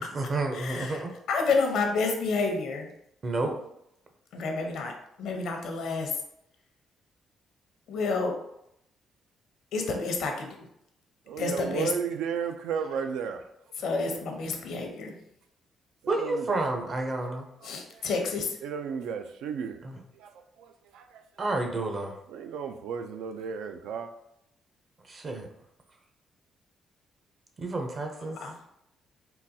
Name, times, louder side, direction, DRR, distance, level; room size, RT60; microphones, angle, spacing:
voice 1, 0.0-1.1 3.2-3.6 16.1-17.5 19.8-20.0 21.4-22.2 25.0-25.5 27.6-28.4, right 2 dB, 40° right, 4 dB, 0.6 m, -30 dB
voice 2, 0.5-1.0 1.3-2.9 4.3-4.9 5.2-6.1 7.9-8.3 9.7-10.6 11.4-11.9 13.8-15.2 17.6-18.6 28.2-28.5, left 4 dB, 75° left, 3 dB, 0.6 m, -29 dB
voice 3, 11.3-13.5 16.0-16.6 17.6-18.1 18.6-19.9 20.1-21.2 22.3-24.1, right 7 dB, 85° right, 7 dB, 0.3 m, -34 dB
3.8 x 2.3 x 2.7 m, 0.78 s
cardioid pair, 90°, 0 cm